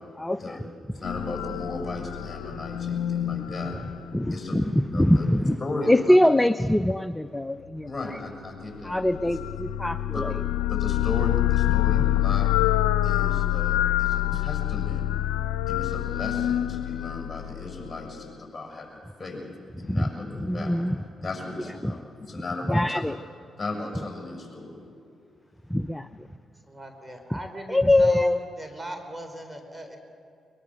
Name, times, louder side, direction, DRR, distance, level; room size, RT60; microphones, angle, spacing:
voice 1, 0.2-0.6 4.1-5.6 5.9-8.2 8.8-10.4 19.8-20.1 20.4-21.0 21.8-21.9 22.7-23.2 25.7-26.3 27.7-28.4, left 1 dB, 10° left, 13 dB, 0.6 m, -23 dB
voice 2, 0.9-3.7 4.3-4.6 4.9-5.3 5.6-6.2 7.9-9.5 9.9-12.5 13.0-15.0 15.7-19.4 19.8-23.0 23.6-24.7, left 2 dB, 30° left, 1 dB, 7.0 m, -36 dB
sound 1, 1.0-4.6 8.9-18.1, left 13 dB, 80° left, 0.5 m, -26 dB
voice 3, 26.7-30.0, right 1 dB, 15° right, 5 dB, 4.0 m, -38 dB
22.5 x 22.0 x 6.5 m, 2.4 s
hypercardioid pair, 45°, 0 cm